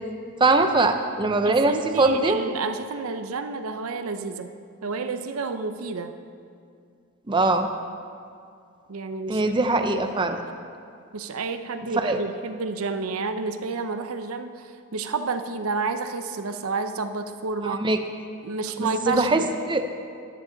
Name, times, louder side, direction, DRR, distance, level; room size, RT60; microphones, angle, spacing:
voice 1, 0.4-2.4 7.3-7.7 9.3-10.4 12.0-12.2 17.6-18.0 18.8-19.4 19.7-19.8, right 2 dB, 20° right, 7 dB, 0.5 m, -22 dB
voice 2, 1.5-4.5 4.8-6.1 8.9-10.3 11.1-17.9 18.4-19.5, right 4 dB, 85° right, 9 dB, 0.6 m, -30 dB
13.5 x 9.9 x 3.9 m, 2.3 s
head